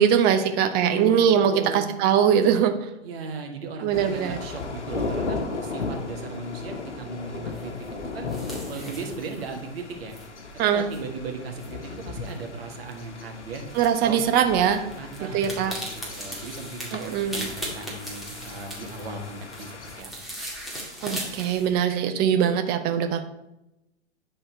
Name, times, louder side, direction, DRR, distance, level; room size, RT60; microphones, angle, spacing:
voice 1, 0.0-2.7 3.8-4.4 10.6-10.9 13.7-14.8 15.3-15.7 16.9-17.5 21.0-23.2, right 8 dB, 30° right, 8 dB, 0.8 m, -22 dB
voice 2, 0.8-1.9 3.0-7.7 8.1-8.3 8.7-10.2 10.5-13.6 14.0-14.2 14.9-15.8 16.1-20.1, right 4 dB, 60° right, 3 dB, 1.8 m, -37 dB
sound 1, 3.9-20.0, left 3 dB, 90° left, 1.1 m, -36 dB
sound 2, 7.5-21.8, equal, ahead, 2.1 m, -39 dB
10.0 x 4.3 x 4.4 m, 0.91 s
hypercardioid pair, 115°, 34 cm